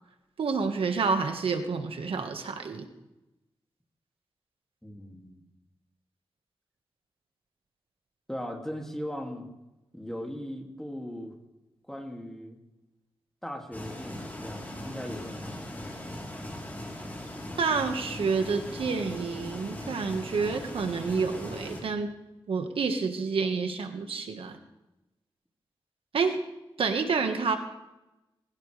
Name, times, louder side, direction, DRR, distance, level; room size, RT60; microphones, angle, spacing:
voice 1, 0.4-2.8 17.6-22.1 22.5-24.6 26.1-26.4 26.8-27.6, right 5 dB, 85° right, 6 dB, 1.5 m, -28 dB
voice 2, 4.8-5.4 8.3-9.5 9.9-11.3 11.9-12.6 13.4-16.0, equal, 5° left, 1 dB, 2.4 m, -39 dB
sound 1, 13.7-21.8, left 1 dB, 20° left, 3.6 m, -39 dB
20.5 x 16.0 x 3.4 m, 0.96 s
wide cardioid pair, 140°, 9 cm